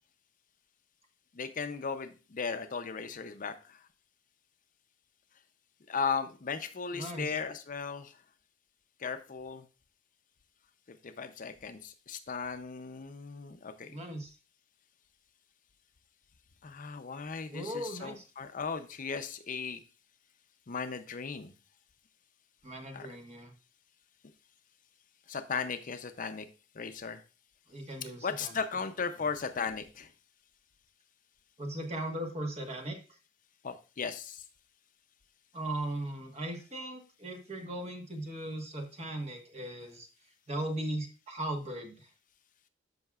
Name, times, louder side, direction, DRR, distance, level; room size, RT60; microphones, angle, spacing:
voice 1, 1.3-3.8 5.9-8.2 9.0-9.6 10.9-13.9 16.6-19.8 20.7-21.5 22.9-23.1 25.3-26.5 26.7-27.2 28.2-30.1 33.6-34.4, left 5 dB, 45° left, 9 dB, 0.6 m, -36 dB
voice 2, 6.9-7.3 13.9-14.3 17.5-18.2 22.6-23.5 27.7-28.5 31.6-33.0 35.5-40.1 40.5-41.9, right 1 dB, 35° right, 4 dB, 1.4 m, -38 dB
13.0 x 5.6 x 2.4 m, 0.33 s
head